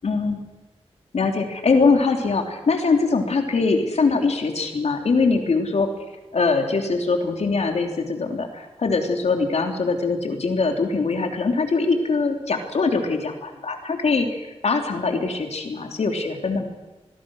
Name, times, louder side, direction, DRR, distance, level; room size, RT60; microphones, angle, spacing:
voice 1, 0.0-0.4 1.1-5.9 6.3-16.6, left 4 dB, 80° left, 4 dB, 3.4 m, -22 dB
26.0 x 20.5 x 6.4 m, 1.2 s
wide cardioid pair, 100°, 11 cm